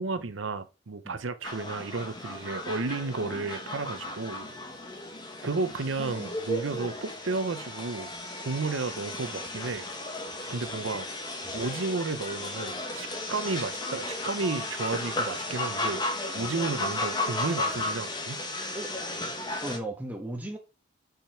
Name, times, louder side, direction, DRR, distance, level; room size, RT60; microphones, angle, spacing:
voice 1, 0.0-4.5 5.4-8.1 8.4-9.8 10.5-11.1 11.5-16.0 16.3-18.4, right 3 dB, 80° right, 0.7 m, -32 dB
sound 1, 1.4-19.8, left 2 dB, 20° left, 1.1 m, -34 dB
voice 2, 19.6-20.6, right 1 dB, 10° right, 1.3 m, -37 dB
5.7 x 5.2 x 4.4 m
head